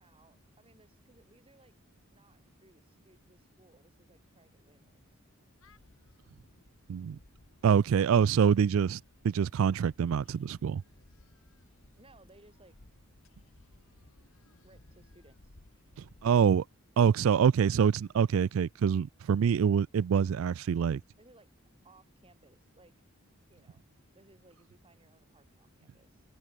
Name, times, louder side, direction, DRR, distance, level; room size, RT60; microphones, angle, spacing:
voice 1, 0.0-1.8 2.1-5.2 12.0-12.8 14.6-15.8 21.2-21.5 21.8-22.9 23.5-26.2, right 2 dB, 25° right, 5.0 m, -62 dB
sound 1, 5.6-16.5, left 2 dB, 75° left, 1.6 m, -60 dB
voice 2, 7.6-9.0 9.2-10.8 16.2-16.6 17.0-21.0, right 7 dB, 70° right, 0.3 m, -25 dB
open air
head